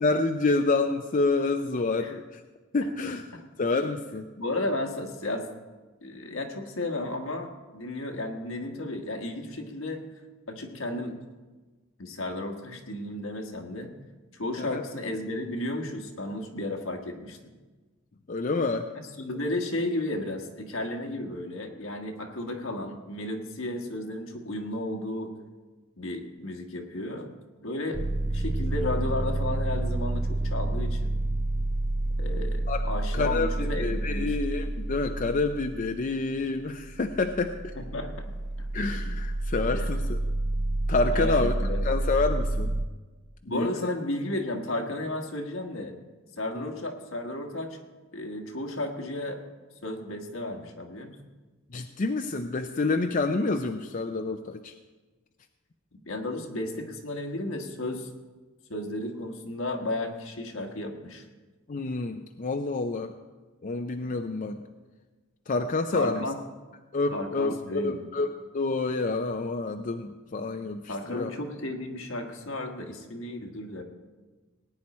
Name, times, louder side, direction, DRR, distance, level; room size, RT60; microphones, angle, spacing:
voice 1, 0.0-2.4 2.7-3.3 3.6-4.3 14.6-14.8 18.3-18.9 32.7-32.8 33.1-37.7 38.7-40.2 40.9-41.5 41.8-42.7 43.5-43.7 46.6-46.7 51.7-54.7 61.7-63.1 63.6-64.6 65.5-66.2 66.9-71.3, left 3 dB, 40° left, 6 dB, 0.5 m, -28 dB
voice 2, 4.4-5.5 6.0-10.0 10.5-11.2 12.0-13.9 14.3-17.4 18.9-25.3 26.0-27.3 27.6-31.1 32.2-34.4 37.7-38.2 39.7-40.1 41.1-41.8 43.4-45.9 46.4-47.8 48.1-49.4 49.8-51.2 56.0-58.1 58.7-61.3 65.9-66.4 67.1-68.1 70.9-73.8, left 1 dB, 75° left, 4 dB, 1.6 m, -33 dB
sound 1, 27.9-42.9, right 1 dB, 35° right, 0.5 m, -29 dB
18.5 x 9.6 x 4.3 m, 1.3 s
head